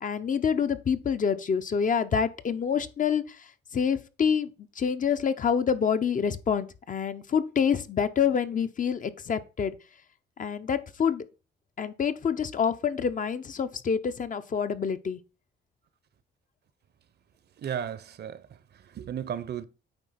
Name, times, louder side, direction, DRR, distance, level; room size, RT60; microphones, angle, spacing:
voice 1, 0.0-3.2 3.7-4.5 4.8-9.7 10.4-11.2 11.8-15.2, left 7 dB, 40° left, 0.8 m, -27 dB
voice 2, 17.6-18.4 18.8-19.6, right 9 dB, 55° right, 0.8 m, -34 dB
9.0 x 3.4 x 5.7 m
cardioid pair, 90°, 20 cm